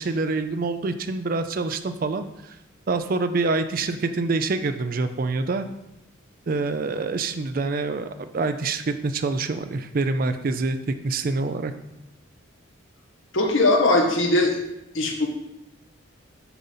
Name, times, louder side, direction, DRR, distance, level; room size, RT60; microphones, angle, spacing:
voice 1, 0.0-2.6 2.9-5.7 6.5-11.7, right 3 dB, 45° right, 9 dB, 0.4 m, -26 dB
voice 2, 13.3-14.5 14.9-15.3, left 2 dB, 70° left, 1 dB, 1.3 m, -20 dB
7.0 x 3.9 x 5.6 m, 0.88 s
head